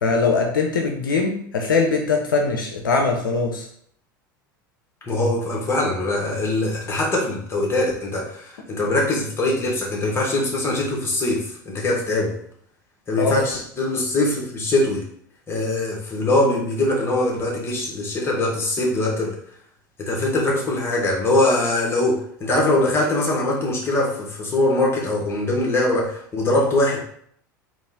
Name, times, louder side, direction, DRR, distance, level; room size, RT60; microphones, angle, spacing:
voice 1, 0.0-3.7 13.2-13.4, left 4 dB, 80° left, 2 dB, 0.6 m, -21 dB
voice 2, 5.0-12.4 13.1-15.1 15.5-19.3 20.0-27.0, left 2 dB, 25° left, -3 dB, 1.6 m, -22 dB
4.0 x 2.5 x 3.6 m, 0.63 s
hypercardioid pair, 80°, 11 cm